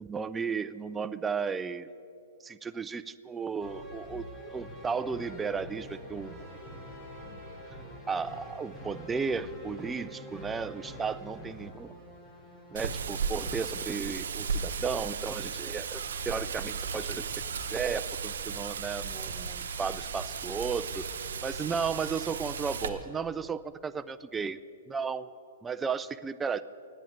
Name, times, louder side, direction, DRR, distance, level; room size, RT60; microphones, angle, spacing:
voice 1, 0.0-1.9 2.4-6.4 8.1-11.9 12.7-21.1 21.4-24.6 24.9-25.3 25.6-26.6, right 5 dB, 10° right, 13 dB, 0.4 m, -34 dB
sound 1, 3.6-14.1, equal, 10° left, 1.9 m, -46 dB
Wind, 12.8-22.9, right 5 dB, 75° right, 1.0 m, -35 dB
10.0 x 8.6 x 9.3 m, 2.6 s
hypercardioid pair, 140°, 0 cm